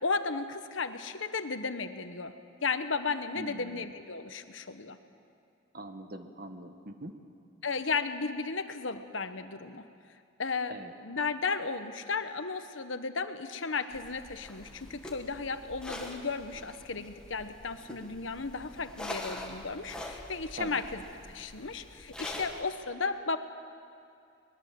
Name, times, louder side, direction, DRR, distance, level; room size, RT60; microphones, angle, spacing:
voice 1, 0.0-2.3 2.6-5.0 7.6-9.8 10.4-10.8 11.0-23.4, left 4 dB, 85° left, 9 dB, 1.2 m, -34 dB
voice 2, 3.3-3.8 5.7-7.1 10.7-10.9 20.5-20.8, right 1 dB, 50° right, 6 dB, 1.5 m, -42 dB
sound 1, 13.9-22.6, left 1 dB, 5° left, 1.9 m, -44 dB
23.0 x 20.5 x 7.7 m, 2.6 s
head